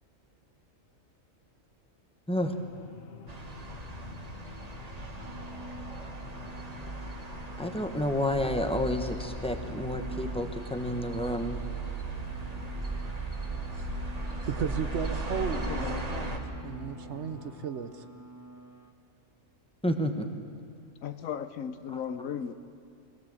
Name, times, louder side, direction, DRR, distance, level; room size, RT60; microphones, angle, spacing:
sound 1, 2.4-17.7, left 7 dB, 50° left, 1.0 m, -47 dB
sound 2, 3.3-16.4, right 3 dB, 30° right, 1.5 m, -37 dB
sound 3, 5.0-18.9, right 1 dB, 15° right, 0.8 m, -49 dB
voice 1, 7.6-11.6 19.8-20.3, left 1 dB, 5° left, 5 dB, 1.1 m, -30 dB
voice 2, 14.5-16.4 16.6-18.1, right 7 dB, 60° right, 11 dB, 1.0 m, -35 dB
voice 3, 15.5-16.0 21.0-22.5, left 8 dB, 85° left, 11 dB, 1.2 m, -36 dB
20.5 x 16.5 x 7.7 m, 2.3 s
omnidirectional pair, 1.4 m